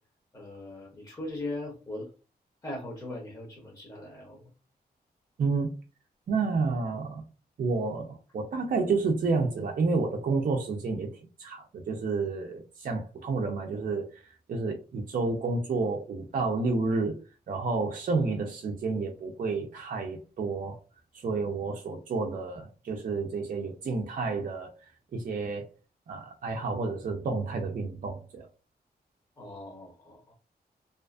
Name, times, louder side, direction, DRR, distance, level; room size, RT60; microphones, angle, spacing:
voice 1, 0.3-2.1 2.6-4.5 29.4-30.3, left 1 dB, 20° left, 0.7 m, -39 dB
voice 2, 5.4-5.7 6.3-7.2 7.6-11.1 11.4-14.2 14.5-20.8 21.1-24.7 25.1-25.7 26.1-28.5, right 4 dB, 55° right, 0.4 m, -30 dB
2.4 x 2.4 x 2.3 m
wide cardioid pair, 145°, 17 cm